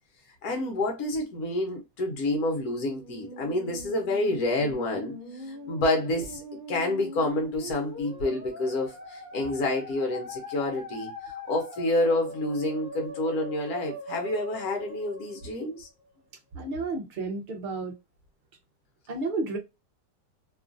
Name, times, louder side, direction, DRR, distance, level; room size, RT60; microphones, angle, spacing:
voice 1, 0.4-6.4 6.7-15.9, left 2 dB, 65° left, 1.2 m, -28 dB
Musical instrument, 2.7-16.1, left 1 dB, 30° right, 1.0 m, -42 dB
voice 2, 16.5-17.9 19.1-19.6, right 3 dB, 55° right, 0.5 m, -31 dB
3.0 x 2.3 x 2.5 m
omnidirectional pair, 1.9 m